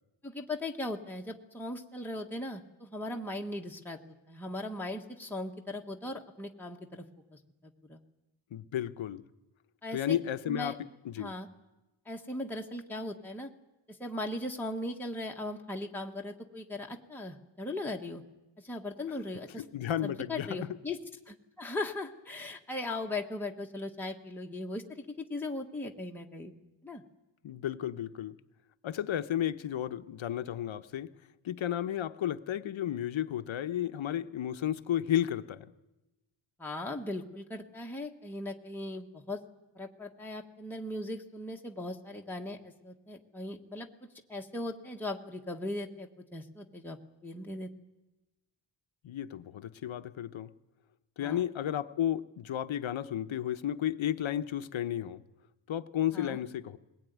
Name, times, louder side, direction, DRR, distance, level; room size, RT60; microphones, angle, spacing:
voice 1, 0.2-7.0 7.9-8.0 9.8-10.2 10.5-10.7 11.2-11.5 12.0-13.5 13.9-18.2 18.6-19.6 20.0-21.0 21.3-26.5 26.8-27.0 36.6-39.4 39.7-43.9 44.3-47.0 47.2-47.7 51.2-51.4 56.1-56.4, left 2 dB, 5° left, 0 dB, 1.3 m, -38 dB
voice 2, 8.5-9.2 9.9-10.8 11.0-11.3 19.6-20.5 27.4-28.4 28.8-31.1 31.4-35.7 49.0-50.5 51.2-55.2 55.7-56.8, left 11 dB, 75° left, 11 dB, 1.0 m, -33 dB
21.0 x 19.5 x 9.4 m, 1.0 s
wide cardioid pair, 150°, 47 cm